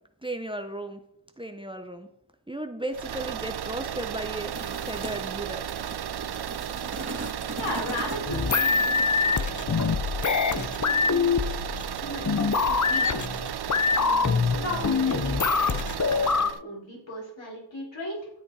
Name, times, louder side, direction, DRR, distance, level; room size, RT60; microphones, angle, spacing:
voice 1, 0.2-1.0 1.4-2.1 2.5-4.5 4.8-5.7, right 1 dB, 10° right, 7 dB, 1.0 m, -35 dB
sound 1, 2.9-16.6, right 10 dB, 55° right, 0.5 m, -34 dB
sound 2, 4.3-9.4, right 2 dB, 30° right, 2.5 m, -40 dB
voice 2, 7.6-10.1 10.6-11.3 12.0-12.3 12.6-13.2 13.9-18.3, left 1 dB, 65° left, -2 dB, 5.0 m, -37 dB
sound 3, 8.1-16.5, left 5 dB, 35° left, 0.8 m, -24 dB
13.0 x 8.4 x 5.0 m, 0.78 s
wide cardioid pair, 55°, 49 cm